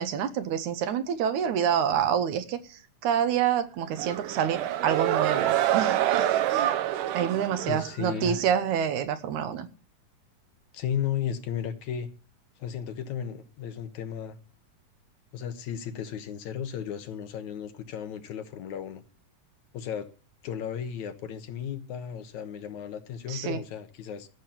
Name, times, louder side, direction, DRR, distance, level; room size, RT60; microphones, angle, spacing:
voice 1, 0.0-6.7 7.1-9.7 23.3-23.6, right 9 dB, 70° right, 2.3 m, -27 dB
sound 1, 3.9-8.4, right 12 dB, 90° right, 2.5 m, -27 dB
voice 2, 7.6-8.4 10.7-12.1 12.6-14.4 15.3-19.0 19.7-20.1 20.4-24.3, left 8 dB, 70° left, 2.5 m, -34 dB
15.0 x 7.5 x 8.7 m
omnidirectional pair, 3.6 m